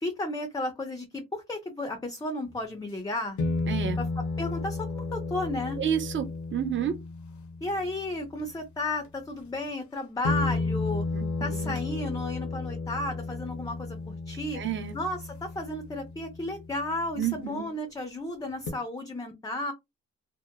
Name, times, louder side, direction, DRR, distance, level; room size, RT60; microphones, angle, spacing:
voice 1, 0.0-3.4 4.0-4.1 4.4-5.8 7.6-11.1 11.4-14.6 14.9-19.7, left 2 dB, 15° left, 0.5 m, -33 dB
sound 1, 2.5-2.6 3.4-8.4 9.7-9.8 10.2-17.6 18.7-18.8, left 3 dB, 70° left, 0.7 m, -33 dB
voice 2, 3.7-4.0 5.8-7.0 11.1-11.7 14.5-14.9 17.2-17.7, right 9 dB, 40° right, 0.6 m, -30 dB
2.8 x 2.0 x 2.2 m
cardioid pair, 90°, 30 cm